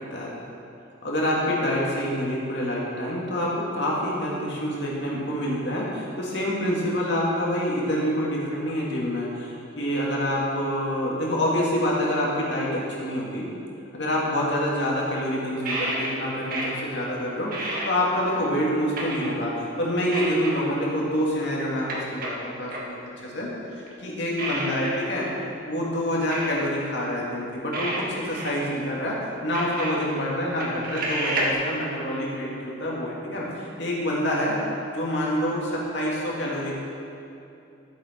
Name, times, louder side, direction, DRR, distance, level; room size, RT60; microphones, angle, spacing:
voice 1, 1.0-13.5 13.9-17.5 17.8-23.5 24.0-25.3 25.7-34.6 34.9-36.8, equal, 60° left, -4 dB, 2.4 m, -27 dB
sound 1, 15.7-17.0 17.3-18.4 19.0-19.6 20.1-20.6 21.0-21.1 21.8-22.9 23.9-24.0 24.4-25.0 25.4-25.5 26.3-26.9 27.7-29.0 29.4-30.2 30.6-31.5, right 1 dB, 50° right, 1.5 m, -30 dB
13.0 x 7.5 x 4.5 m, 2.7 s
head